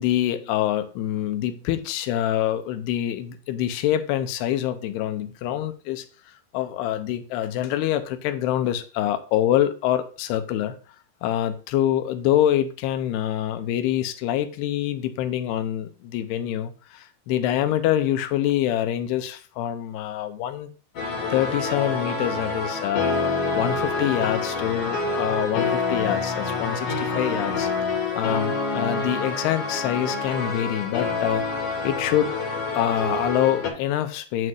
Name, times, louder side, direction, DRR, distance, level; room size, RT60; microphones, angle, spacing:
voice 1, 0.0-6.1 6.5-10.7 11.2-20.7 21.3-31.5 31.8-32.3 32.7-34.5, left 11 dB, 85° left, 10 dB, 2.6 m, -25 dB
sound 1, 20.9-33.7, left 3 dB, 55° left, 1.6 m, -27 dB
7.8 x 7.7 x 2.4 m, 0.38 s
omnidirectional pair, 4.7 m